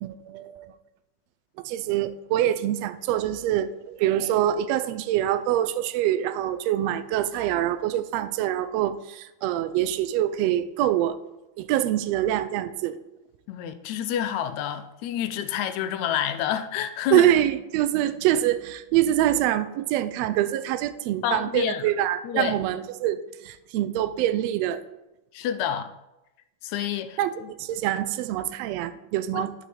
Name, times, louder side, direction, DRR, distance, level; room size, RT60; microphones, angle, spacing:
voice 1, 0.0-0.8 1.6-11.2 11.6-13.0 17.1-24.8 27.2-27.3 27.6-29.5, right 12 dB, 80° right, 12 dB, 1.6 m, -25 dB
voice 2, 13.5-17.3 21.2-21.9 22.2-22.6 25.3-25.9 26.6-27.5 29.3-29.5, left 10 dB, 80° left, 10 dB, 1.9 m, -28 dB
11.0 x 5.5 x 4.2 m, 0.95 s
omnidirectional pair, 3.3 m